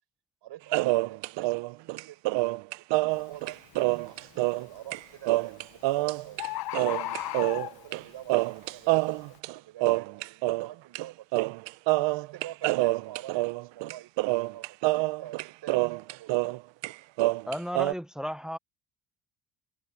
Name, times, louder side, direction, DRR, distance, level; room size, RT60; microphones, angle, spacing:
voice 1, 0.4-3.6 4.0-6.6 7.1-11.5 12.0-16.3, right 13 dB, 70° right, 6.8 m, -47 dB
sound 1, 0.7-4.7 4.9-5.0 5.3-6.5 6.7-8.0 8.3-10.7 10.9-11.1 11.3-16.6 16.8-17.9, right 20 dB, 85° right, 0.6 m, -27 dB
Bird, 3.1-3.4 3.9-4.4 5.4-5.5 5.8-5.9 6.0-6.1 6.4-8.1 8.7-8.8, left 15 dB, 55° left, 0.8 m, -34 dB
voice 2, 17.5-18.6, equal, ahead, 0.6 m, -34 dB
cardioid pair, 165°, 43 cm